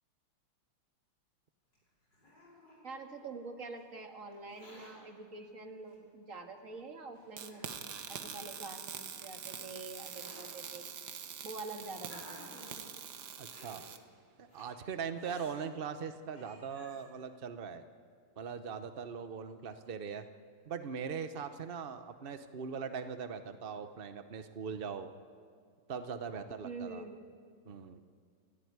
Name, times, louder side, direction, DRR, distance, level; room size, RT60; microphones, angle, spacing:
Hiss, 1.7-3.4 4.3-4.9 5.9-6.0 6.8-6.9 7.4-8.4 9.3-10.5 11.4-12.9 13.4-13.8 14.5-14.7 15.1-15.6 16.0-16.1 16.3-17.0, equal, 50° left, 6.4 m, -55 dB
voice 1, 2.8-7.8 8.1-11.0 11.4-12.5 26.6-27.2, right 3 dB, 35° right, 3 dB, 2.3 m, -46 dB
sound 1, 7.4-14.0, right 8 dB, 55° right, 1.5 m, -45 dB
voice 2, 13.4-13.8 14.4-17.9 18.4-20.2 20.7-25.1 25.9-27.0 27.6-28.0, right 6 dB, 75° right, 9 dB, 0.5 m, -40 dB
28.0 x 14.0 x 9.6 m, 2.1 s
omnidirectional pair, 2.4 m